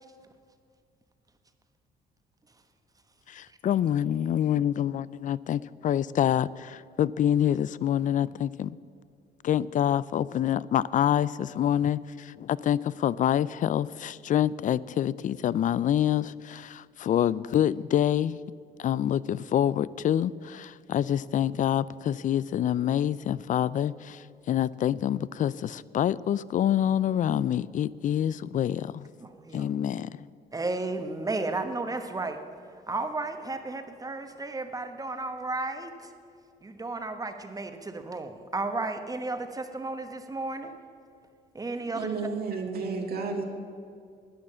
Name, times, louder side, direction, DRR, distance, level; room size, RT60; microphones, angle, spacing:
voice 1, 3.3-8.8 9.4-18.4 18.8-29.1 29.5-30.1, left 10 dB, 45° left, 0.4 m, -26 dB
voice 2, 29.2-29.7 30.5-32.4 32.9-36.1 36.6-40.7 41.5-42.1, right 3 dB, 20° right, 1.2 m, -33 dB
voice 3, 41.9-43.4, right 4 dB, 60° right, 1.9 m, -31 dB
11.5 x 9.6 x 7.4 m
cardioid pair, 90°, 18 cm